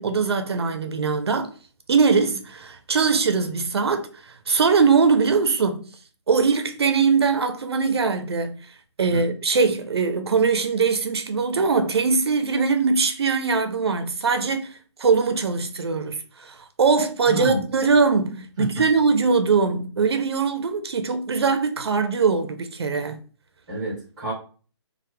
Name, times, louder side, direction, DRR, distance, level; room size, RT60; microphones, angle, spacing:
voice 1, 0.0-1.5 1.9-4.1 4.5-5.9 6.3-8.6 9.0-14.7 15.0-23.2, right 5 dB, 60° right, 0.4 m, -21 dB
voice 2, 17.3-17.7 18.6-18.7 23.7-24.3, equal, 5° right, 0.5 m, -29 dB
2.9 x 2.1 x 3.1 m
hypercardioid pair, 175°, 15 cm